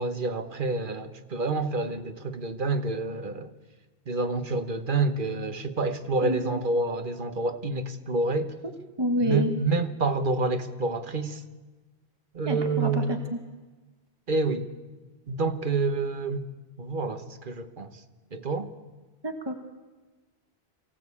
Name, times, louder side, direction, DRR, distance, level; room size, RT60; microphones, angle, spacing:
voice 1, 0.0-3.5 4.1-8.5 9.2-11.4 12.3-13.2 14.3-14.7 15.3-16.5 16.8-18.0 18.3-18.7, right 3 dB, 55° right, 1.3 m, -28 dB
voice 2, 6.2-6.5 9.0-9.5 12.5-13.4 19.2-19.5, equal, 25° right, 1.3 m, -28 dB
23.5 x 16.5 x 8.4 m
omnidirectional pair, 1.0 m